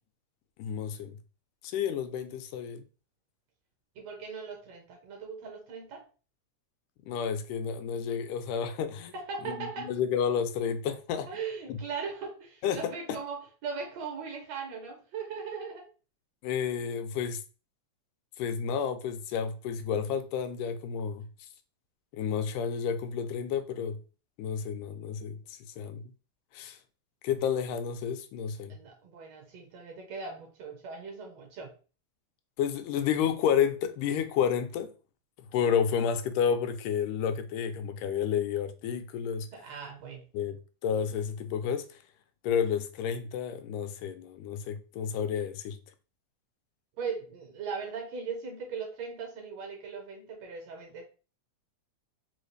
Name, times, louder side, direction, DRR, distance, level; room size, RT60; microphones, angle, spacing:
voice 1, 0.6-1.2 1.6-2.8 7.1-9.1 9.4-11.3 11.7-11.8 12.6-12.9 16.4-17.4 18.4-21.3 22.1-24.0 24.4-26.0 26.5-26.8 27.2-28.8 32.6-34.9 35.5-39.5 40.3-40.6 40.8-41.9 42.4-45.8, left 7 dB, 90° left, 2.1 m, -30 dB
voice 2, 3.9-6.1 9.1-9.9 11.3-15.9 28.7-31.7 39.5-40.3 47.0-51.0, right 5 dB, 70° right, 1.7 m, -39 dB
4.7 x 2.3 x 3.2 m
omnidirectional pair, 3.5 m